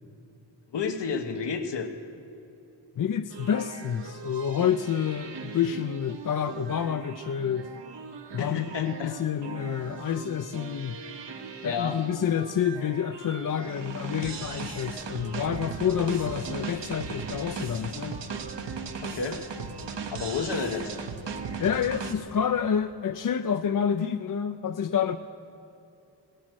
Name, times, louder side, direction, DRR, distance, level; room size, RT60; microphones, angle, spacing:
voice 1, 0.7-1.9 8.4-9.2 11.6-12.0 19.0-19.4 20.1-20.9, left 5 dB, 80° left, 7 dB, 1.2 m, -31 dB
voice 2, 3.0-7.7 8.3-11.0 11.6-18.2 21.6-25.2, left 8 dB, 50° left, 9 dB, 0.5 m, -28 dB
sound 1, 3.3-22.1, right 5 dB, 75° right, 1.2 m, -38 dB
17.5 x 12.5 x 6.3 m, 2.7 s
cardioid pair, 65°, 42 cm